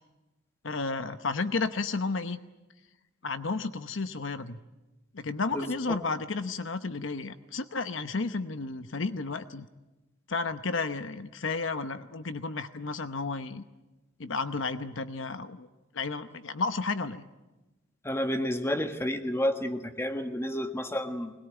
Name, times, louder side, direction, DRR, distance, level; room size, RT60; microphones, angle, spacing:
voice 1, 0.6-2.4 3.2-4.6 5.1-9.7 10.3-13.6 14.2-15.7 15.9-17.2, left 3 dB, 70° left, 11 dB, 0.9 m, -32 dB
voice 2, 5.5-6.0 18.0-21.3, equal, 15° left, 6 dB, 1.6 m, -30 dB
22.0 x 20.5 x 9.1 m, 1.1 s
head